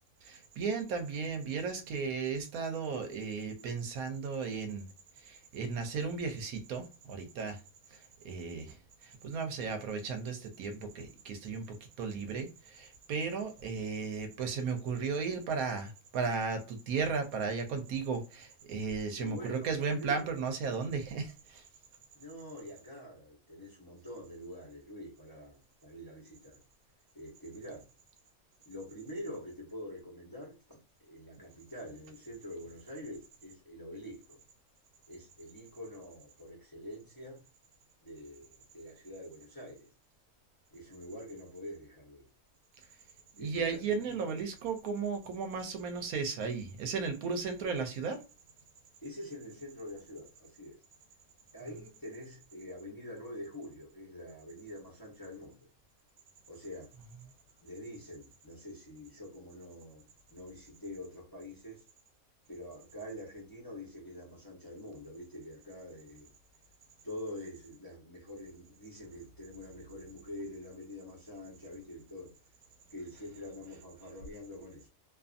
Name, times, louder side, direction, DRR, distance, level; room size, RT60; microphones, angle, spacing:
voice 1, 0.2-4.9 5.2-7.6 7.9-8.8 9.0-21.6 43.4-48.2, right 5 dB, 80° right, 1.1 m, -35 dB
voice 2, 19.2-20.4 22.1-26.6 27.1-27.8 28.6-30.6 31.0-34.4 35.1-37.4 38.0-39.9 40.7-42.3 43.4-44.1 49.0-50.8 51.5-55.7 56.5-56.9 57.6-60.0 60.3-61.8 62.5-66.3 67.0-72.3 72.9-74.9, left 1 dB, 20° left, 0.7 m, -46 dB
2.6 x 2.5 x 2.4 m
omnidirectional pair, 1.5 m